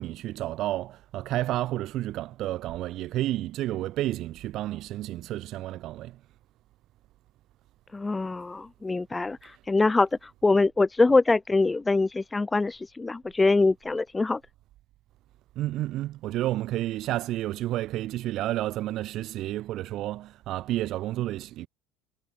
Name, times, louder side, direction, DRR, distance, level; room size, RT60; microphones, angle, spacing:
voice 1, 0.0-6.2 9.4-9.6 15.6-21.7, right 15 dB, 60° right, 5.6 m, -31 dB
voice 2, 7.9-14.4, left 3 dB, 15° left, 3.5 m, -24 dB
supercardioid pair, 105°, 0 cm